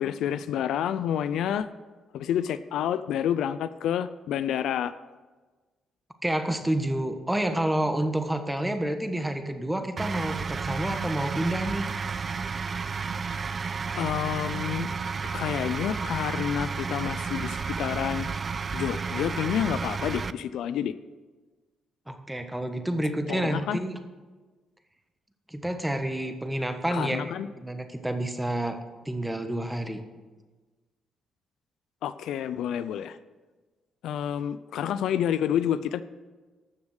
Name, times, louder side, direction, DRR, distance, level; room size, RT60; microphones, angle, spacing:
voice 1, 0.0-1.7 2.1-4.9 14.0-14.9 15.3-18.3 18.7-20.9 23.3-23.8 26.9-27.5 32.0-33.2 34.0-36.0, left 9 dB, 80° left, 13 dB, 0.4 m, -29 dB
voice 2, 6.2-11.9 22.1-24.0 25.5-28.8 29.0-30.0, right 1 dB, 5° right, 7 dB, 1.3 m, -29 dB
sound 1, 10.0-20.3, right 5 dB, 40° right, 0.4 m, -32 dB
12.5 x 7.1 x 6.5 m, 1.3 s
cardioid pair, 90°, 0 cm